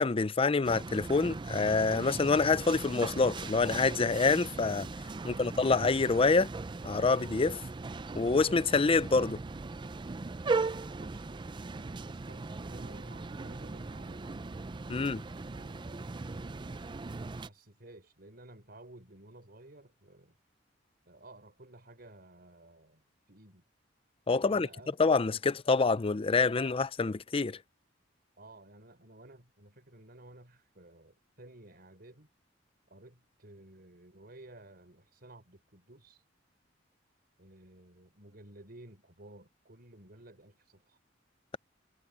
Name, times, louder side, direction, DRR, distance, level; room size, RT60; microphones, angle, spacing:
voice 1, 0.0-4.9 5.2-6.5 6.8-7.6 8.2-9.4 14.9-15.2 24.3-24.7 25.0-27.6, left 4 dB, 30° left, 0.5 m, -26 dB
sound 1, 0.6-17.5, right 3 dB, 25° right, 0.4 m, -39 dB
voice 2, 5.1-5.6 10.7-15.0 15.3-16.9 17.3-20.4 21.1-23.6 24.4-25.0 28.4-32.3 32.9-36.2 37.4-41.0, right 1 dB, 55° right, 4.9 m, -54 dB
head